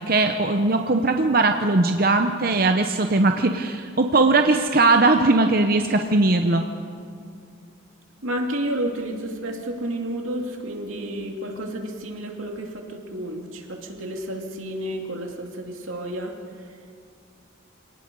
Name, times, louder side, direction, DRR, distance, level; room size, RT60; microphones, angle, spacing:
voice 1, 0.0-6.6, right 2 dB, 45° right, 5 dB, 0.8 m, -19 dB
voice 2, 8.2-16.7, right 1 dB, 85° right, 1 dB, 2.8 m, -31 dB
27.5 x 18.5 x 5.5 m, 2.3 s
head